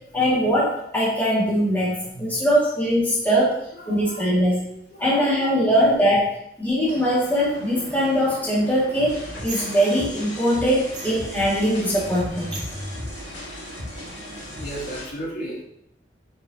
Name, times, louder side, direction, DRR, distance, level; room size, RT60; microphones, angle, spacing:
voice 1, 0.1-3.6 3.9-4.6 5.0-12.6, equal, 10° left, -8 dB, 2.0 m, -21 dB
voice 2, 2.0-2.4 3.8-4.2 4.9-5.4 14.6-15.6, right 1 dB, 60° left, -6 dB, 3.1 m, -35 dB
sound 1, 6.9-15.0, right 2 dB, 80° right, 1.7 m, -40 dB
sound 2, 9.1-15.1, left 1 dB, 80° left, 2.2 m, -36 dB
10.0 x 5.6 x 2.8 m, 0.77 s
head